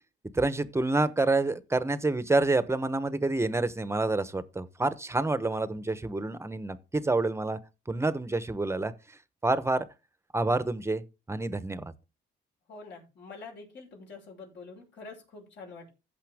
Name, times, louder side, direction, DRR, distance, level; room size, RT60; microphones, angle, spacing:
voice 1, 0.3-7.6 7.9-8.9 9.4-9.8 10.3-11.9, right 2 dB, 15° right, 0.9 m, -28 dB
voice 2, 12.7-15.9, left 4 dB, 65° left, 5.8 m, -46 dB
15.5 x 5.7 x 3.5 m
cardioid pair, 90°, 20 cm